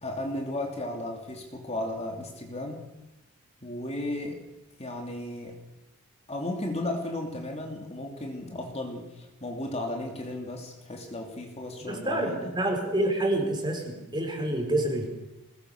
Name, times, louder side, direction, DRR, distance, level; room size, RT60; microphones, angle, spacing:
voice 1, 0.0-2.8 3.6-4.4 4.8-5.6 6.3-12.5, left 1 dB, 30° left, 2 dB, 3.0 m, -34 dB
voice 2, 11.9-15.1, right 1 dB, 20° right, 2 dB, 4.6 m, -28 dB
22.5 x 20.0 x 6.7 m, 0.94 s
head